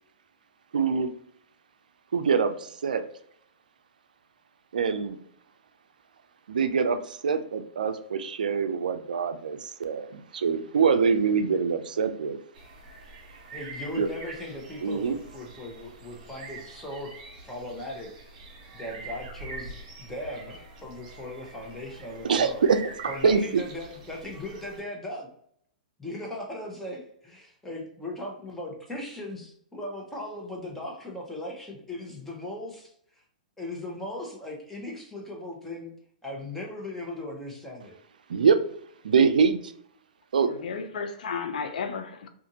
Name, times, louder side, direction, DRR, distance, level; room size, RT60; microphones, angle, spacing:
voice 1, 0.7-1.1 2.1-3.0 4.7-5.2 6.5-12.4 14.0-14.1 14.8-15.2 22.3-22.8 23.2-23.6 38.3-38.6 39.0-39.7 40.3-40.5, right 6 dB, 85° right, 9 dB, 0.4 m, -24 dB
sound 1, 12.5-24.8, right 3 dB, 55° right, 1.1 m, -45 dB
voice 2, 13.5-17.1 17.4-18.1 18.7-22.7 23.1-25.3 26.0-32.9 33.6-35.9 36.2-37.9, left 1 dB, 5° left, -1 dB, 0.8 m, -38 dB
voice 3, 40.5-42.3, left 5 dB, 75° left, 7 dB, 0.5 m, -33 dB
2.5 x 2.4 x 2.7 m, 0.66 s
hypercardioid pair, 130°, 4 cm